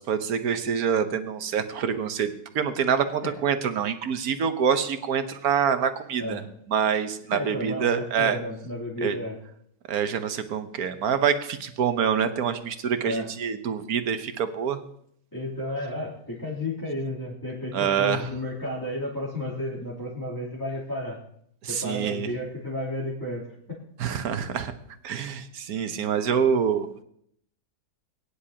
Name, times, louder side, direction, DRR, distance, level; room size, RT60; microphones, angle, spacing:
voice 1, 0.1-2.3 2.5-6.4 6.7-8.4 9.0-9.2 9.9-14.8 17.7-18.2 21.6-22.3 24.0-24.7 25.0-26.9, right 7 dB, 70° right, 9 dB, 1.4 m, -26 dB
voice 2, 7.3-9.4 13.0-13.3 15.3-21.2 21.7-23.4 23.7-23.8, left 1 dB, 10° left, -8 dB, 3.1 m, -32 dB
21.5 x 10.0 x 2.9 m, 0.69 s
omnidirectional pair, 1.7 m